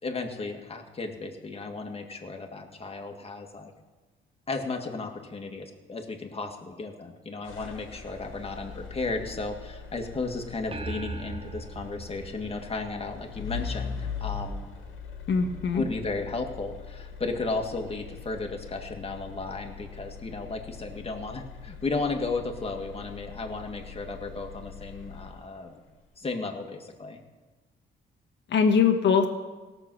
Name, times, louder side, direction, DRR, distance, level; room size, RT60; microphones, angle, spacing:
voice 1, 0.0-3.7 4.5-14.7 15.7-25.8 26.2-27.2, left 3 dB, 30° left, 3 dB, 1.9 m, -34 dB
sound 1, 7.4-25.7, left 6 dB, 90° left, 1.9 m, -41 dB
sound 2, 10.7-13.4, right 4 dB, 30° right, 0.8 m, -39 dB
voice 2, 15.3-15.8 28.5-29.3, left 6 dB, 65° left, 6 dB, 1.4 m, -22 dB
17.5 x 7.0 x 6.4 m, 1.2 s
cardioid pair, 90°, 20 cm